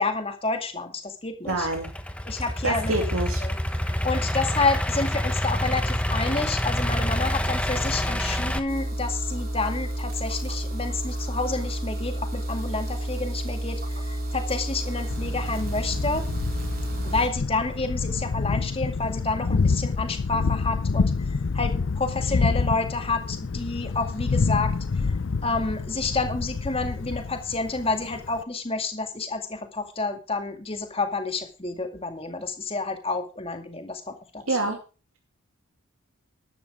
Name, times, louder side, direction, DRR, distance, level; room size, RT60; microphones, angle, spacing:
voice 1, 0.0-1.7 2.3-2.9 3.4-3.6 3.8-16.3 17.0-21.1 21.5-24.7 25.4-34.7, left 3 dB, 25° left, 6 dB, 2.1 m, -29 dB
Idling / Accelerating revving vroom, 1.5-8.6, equal, 5° left, 1.0 m, -27 dB
voice 2, 1.5-1.9 2.6-3.4 34.5-34.8, right 2 dB, 80° right, 2 dB, 2.5 m, -26 dB
sound 1, 8.7-17.3, right 1 dB, 45° right, 4.0 m, -30 dB
Thunder, 15.1-28.4, left 4 dB, 55° left, 0.5 m, -28 dB
12.0 x 12.0 x 3.6 m, 0.34 s
head